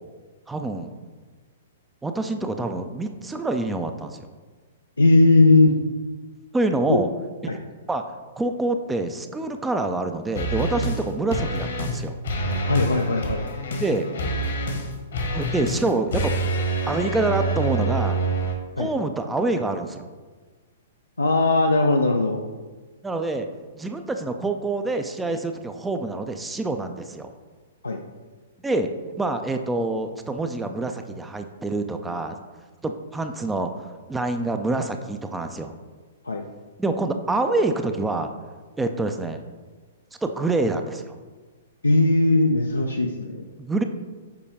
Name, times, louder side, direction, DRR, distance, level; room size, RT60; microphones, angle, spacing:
voice 1, 0.5-0.9 2.0-4.3 6.5-7.1 7.9-8.0 8.4-12.2 13.8-14.1 15.3-16.3 16.9-18.2 18.8-20.1 23.0-23.5 23.7-27.3 28.6-28.9 29.2-32.4 32.8-35.8 36.8-38.3 38.8-39.4 40.2-41.2 43.6-43.8, right 2 dB, 10° right, 6 dB, 0.4 m, -26 dB
voice 2, 5.0-5.7 6.9-7.0 7.5-7.6 12.7-13.4 18.8-18.9 21.2-22.5 27.8-28.0 36.2-36.4 41.8-43.5, left 2 dB, 80° left, 2 dB, 0.4 m, -19 dB
sound 1, 10.4-11.0 11.3-12.0 12.2-18.5, right 2 dB, 60° left, 1.1 m, -26 dB
6.9 x 4.5 x 3.4 m, 1.4 s
figure-of-eight pair, 115°, 0 cm